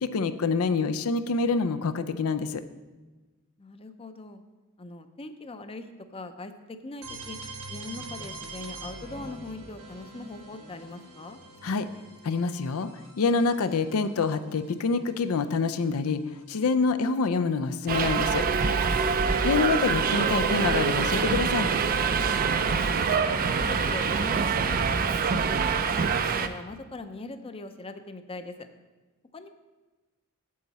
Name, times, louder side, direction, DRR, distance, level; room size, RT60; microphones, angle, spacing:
voice 1, 0.0-2.6 11.6-11.9 12.2-12.9 13.2-16.2 16.5-18.4 19.4-21.7, left 4 dB, 80° left, 11 dB, 0.5 m, -26 dB
voice 2, 3.6-4.4 4.8-5.9 6.1-7.4 7.7-11.4 22.7-25.6 26.0-28.7 29.3-29.5, left 2 dB, 25° left, 9 dB, 0.6 m, -41 dB
sound 1, 7.0-16.7, right 3 dB, 90° right, 1.4 m, -45 dB
Subway metro underground, 17.9-26.5, right 5 dB, 40° right, 0.4 m, -25 dB
8.5 x 7.8 x 4.1 m, 1.2 s
head